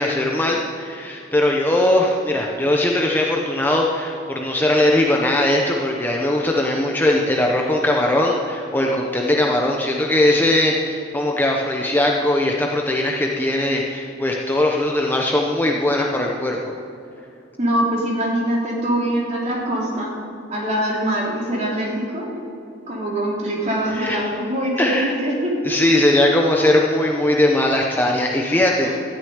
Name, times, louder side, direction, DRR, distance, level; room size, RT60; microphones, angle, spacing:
voice 1, 0.0-16.7 23.9-24.2 24.8-25.2 25.6-29.0, left 1 dB, 10° left, 0 dB, 0.8 m, -20 dB
voice 2, 17.6-20.2 20.5-22.4 22.9-25.6 28.8-29.0, right 1 dB, 35° right, -3 dB, 3.3 m, -23 dB
13.5 x 6.9 x 9.4 m, 2.6 s
head